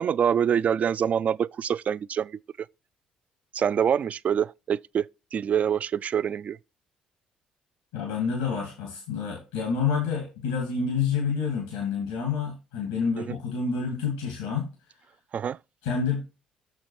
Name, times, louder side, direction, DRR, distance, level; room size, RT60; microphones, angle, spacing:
voice 1, 0.0-2.3 3.5-6.6 15.3-15.6, right 8 dB, 50° right, 0.3 m, -25 dB
voice 2, 7.9-14.7 15.8-16.2, left 5 dB, 85° left, 2.2 m, -28 dB
6.8 x 5.8 x 4.7 m
hypercardioid pair, 50°, 3 cm